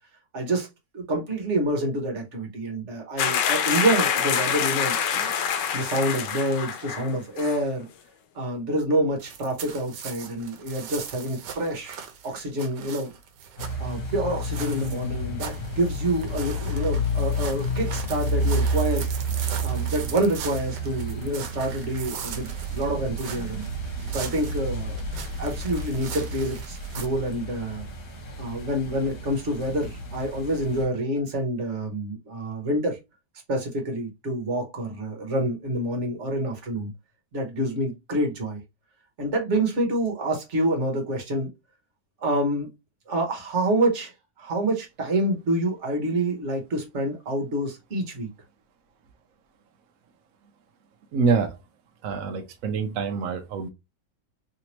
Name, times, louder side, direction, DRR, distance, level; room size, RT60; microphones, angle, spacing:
voice 1, 0.3-0.7 0.9-5.3 5.7-7.9 8.3-12.0 12.2-13.1 13.8-19.1 19.6-23.6 24.1-25.0 25.4-27.8 28.4-33.0 33.5-36.9 37.3-38.6 39.2-41.5 42.2-42.7 43.1-48.3, right 1 dB, 45° right, 1.4 m, -27 dB
sound 1, 3.2-7.1 7.4-7.6, left 8 dB, 80° left, 1.2 m, -26 dB
sound 2, 9.2-27.1, right 7 dB, 85° right, 1.4 m, -40 dB
sound 3, 13.6-30.8, equal, 60° left, 1.6 m, -30 dB
voice 2, 51.1-51.6 52.0-53.7, right 5 dB, 65° right, 0.9 m, -25 dB
3.4 x 2.8 x 2.9 m
omnidirectional pair, 1.9 m